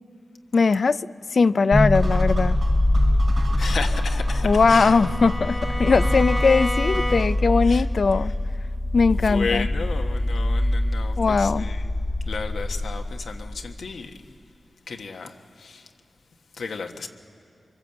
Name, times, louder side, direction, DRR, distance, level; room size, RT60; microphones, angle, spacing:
voice 1, 0.5-1.0 1.3-2.6 4.4-8.3 8.9-9.7 11.2-11.7, left 4 dB, 65° left, 15 dB, 0.5 m, -20 dB
sound 1, 1.7-13.8, left 1 dB, 35° left, 1.4 m, -24 dB
sound 2, 1.9-7.5, right 2 dB, 70° right, 4.1 m, -36 dB
voice 2, 3.6-5.0 7.1-7.2 7.6-7.8 9.1-11.9 12.2-14.3 14.9-15.9 16.6-17.1, left 4 dB, 80° left, 4 dB, 1.3 m, -33 dB
Bowed string instrument, 3.8-7.6, left 1 dB, 20° left, 0.8 m, -32 dB
24.0 x 22.0 x 7.9 m, 2.4 s
cardioid pair, 45°, 0 cm